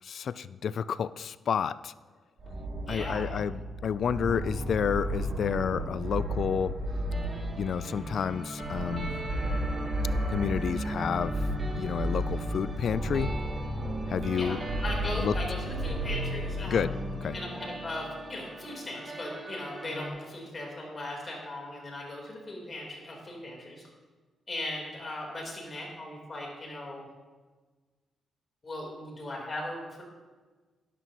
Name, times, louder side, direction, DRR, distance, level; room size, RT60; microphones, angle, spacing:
voice 1, 0.0-1.9 2.9-6.8 7.6-9.1 10.3-11.5 11.8-13.3 14.1-14.6 15.2-15.3 16.7-16.9 17.2-17.3, left 7 dB, 65° left, 17 dB, 0.3 m, -30 dB
sound 1, 2.4-18.1, right 1 dB, 55° right, 2.9 m, -33 dB
voice 2, 2.9-3.4 14.4-16.8 17.3-23.9 24.5-27.1 28.6-30.0, left 1 dB, 40° left, -1 dB, 3.7 m, -38 dB
sound 2, 7.1-20.1, right 1 dB, 35° right, 2.5 m, -41 dB
12.5 x 11.0 x 3.0 m, 1.4 s
supercardioid pair, 60°, 0 cm